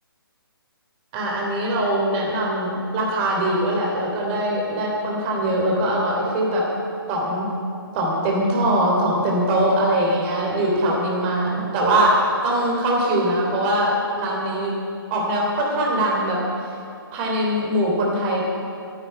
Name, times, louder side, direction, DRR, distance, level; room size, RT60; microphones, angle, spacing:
voice 1, 1.1-6.7 7.1-7.5 7.9-14.7 15.1-16.4 17.1-18.4, right 1 dB, 25° right, -2 dB, 3.2 m, -22 dB
11.5 x 7.9 x 9.5 m, 2.5 s
figure-of-eight pair, 145°, 13 cm